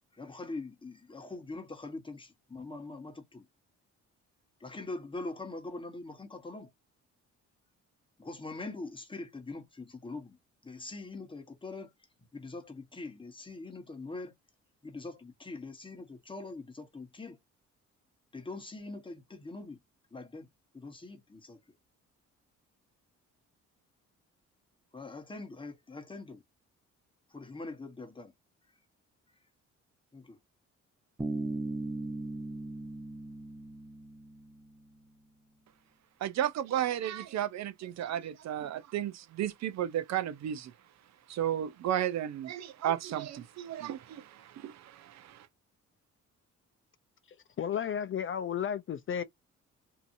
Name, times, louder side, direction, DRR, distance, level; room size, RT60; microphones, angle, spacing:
voice 1, 0.2-3.5 4.6-6.7 8.2-10.4 10.6-11.9 12.3-14.3 14.8-17.4 18.3-19.8 20.1-20.5 20.7-21.6 24.9-26.4 27.3-28.3 30.1-30.4, left 3 dB, 15° left, 1.1 m, -43 dB
Bass guitar, 31.2-34.9, right 2 dB, 10° right, 0.6 m, -38 dB
voice 2, 36.2-40.7 41.3-45.4, right 11 dB, 60° right, 0.5 m, -33 dB
voice 3, 47.3-49.2, left 8 dB, 45° left, 0.5 m, -33 dB
2.8 x 2.6 x 2.5 m
cardioid pair, 90°, 30 cm